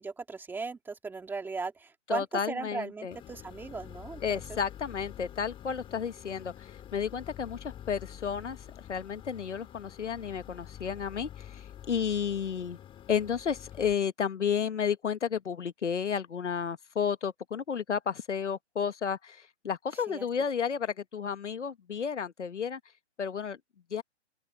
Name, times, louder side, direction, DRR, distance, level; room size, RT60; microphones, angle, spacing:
voice 1, 0.0-4.6 20.1-20.3, right 4 dB, 5° right, 1.9 m, -37 dB
voice 2, 2.1-3.2 4.2-8.6 8.9-12.8 13.1-22.8 23.2-23.6 23.9-24.0, left 7 dB, 90° left, 1.5 m, -32 dB
sound 1, 3.1-13.9, left 10 dB, 15° left, 4.0 m, -47 dB
open air
hypercardioid pair, 150°, 35 cm